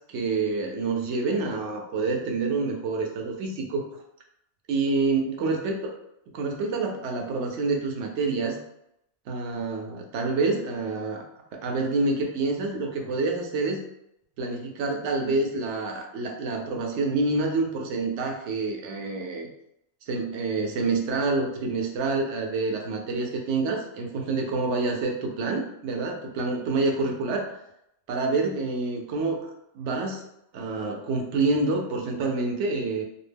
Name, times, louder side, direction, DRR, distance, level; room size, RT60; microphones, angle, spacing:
voice 1, 0.1-3.8 4.7-5.8 6.3-8.6 9.3-11.2 11.5-13.8 14.4-19.5 20.1-27.5 28.1-29.5 29.7-30.2 30.5-33.0, right 3 dB, 75° right, 2 dB, 0.9 m, -27 dB
2.4 x 2.1 x 3.2 m, 0.79 s
omnidirectional pair, 1.2 m